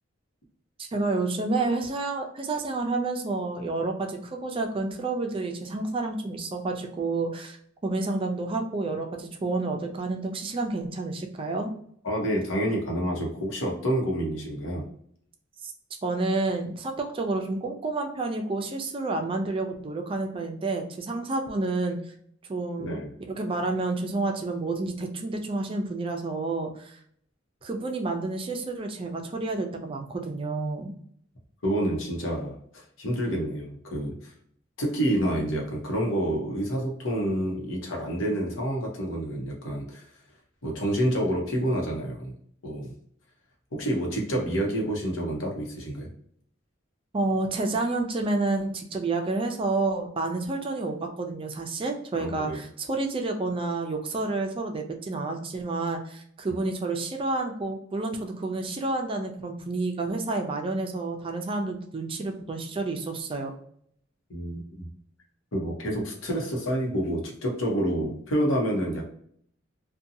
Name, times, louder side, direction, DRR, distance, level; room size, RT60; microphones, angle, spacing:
voice 1, 0.8-7.6 7.8-11.7 15.6-15.7 16.0-22.0 22.5-27.0 27.6-30.9 47.1-63.5, right 3 dB, 25° right, 4 dB, 0.4 m, -29 dB
voice 2, 12.0-14.8 22.8-23.1 31.6-34.2 34.8-40.0 40.6-42.3 42.6-42.9 43.7-46.1 52.1-52.6 64.3-64.9 65.5-69.1, right 1 dB, 90° left, -1 dB, 0.9 m, -28 dB
2.6 x 2.2 x 2.6 m, 0.64 s
head